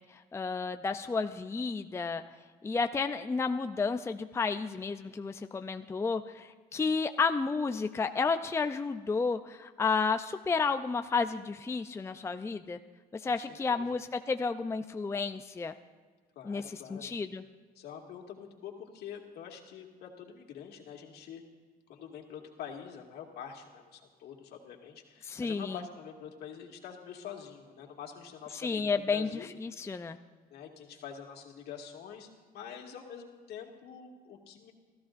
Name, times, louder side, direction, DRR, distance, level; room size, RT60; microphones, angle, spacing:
voice 1, 0.3-2.2 2.6-12.8 13.1-15.7 16.5-17.4 25.3-25.8 28.6-30.2, left 4 dB, 15° left, 8 dB, 0.5 m, -31 dB
voice 2, 13.2-13.9 16.4-17.1 17.8-21.4 21.9-29.5 30.5-32.3 32.5-34.7, left 8 dB, 70° left, 1 dB, 2.2 m, -46 dB
29.5 x 14.5 x 2.6 m, 1.5 s
cardioid pair, 110°, 17 cm